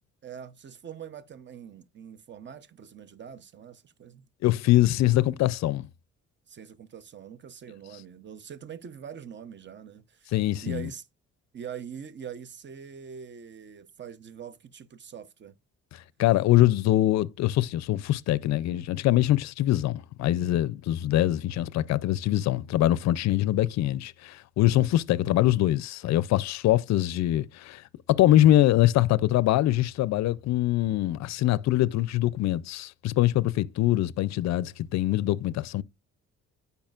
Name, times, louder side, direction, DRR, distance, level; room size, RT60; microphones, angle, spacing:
voice 1, 0.2-4.3 6.5-10.3 10.6-11.1 11.5-15.6, right 8 dB, 40° right, 0.7 m, -43 dB
voice 2, 4.4-5.9 10.3-10.9 15.9-35.8, left 14 dB, 65° left, 0.4 m, -23 dB
8.7 x 5.5 x 2.4 m
cardioid pair, 90°, 30 cm